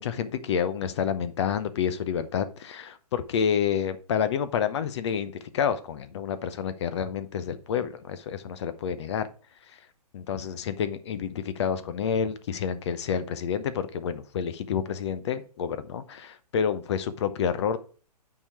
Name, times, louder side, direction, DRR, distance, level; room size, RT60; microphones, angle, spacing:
voice 1, 0.0-9.3 9.6-9.9 10.1-17.8, left 7 dB, 45° left, 12 dB, 0.7 m, -29 dB
8.7 x 4.9 x 4.6 m, 0.39 s
figure-of-eight pair, 125°, 20 cm